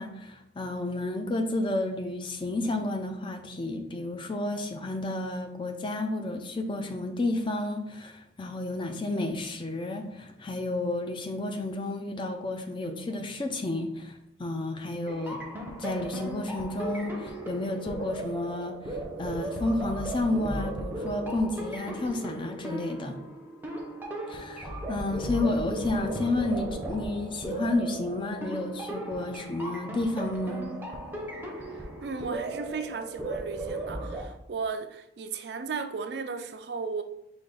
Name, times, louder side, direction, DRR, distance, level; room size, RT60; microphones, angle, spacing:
voice 1, 0.0-14.1 14.4-15.4 15.8-23.2 24.3-30.7, left 2 dB, 30° left, 0.4 m, -31 dB
sound 1, 15.1-34.2, right 1 dB, 10° right, 0.7 m, -36 dB
voice 2, 31.6-37.0, right 5 dB, 65° right, 0.4 m, -35 dB
5.0 x 2.5 x 3.9 m
head